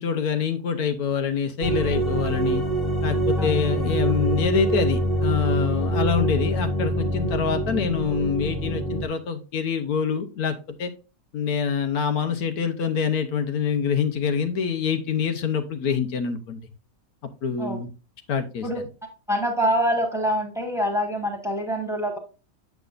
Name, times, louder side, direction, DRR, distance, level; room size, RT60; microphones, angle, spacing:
voice 1, 0.0-2.6 3.0-10.9 11.3-16.6 17.4-17.9 18.3-18.9, left 6 dB, 80° left, 7 dB, 1.4 m, -25 dB
sound 1, 1.6-9.1, right 1 dB, 40° left, 1.5 m, -25 dB
voice 2, 19.3-22.2, equal, ahead, 2 dB, 1.5 m, -25 dB
7.7 x 7.2 x 2.5 m, 0.33 s
omnidirectional pair, 1.6 m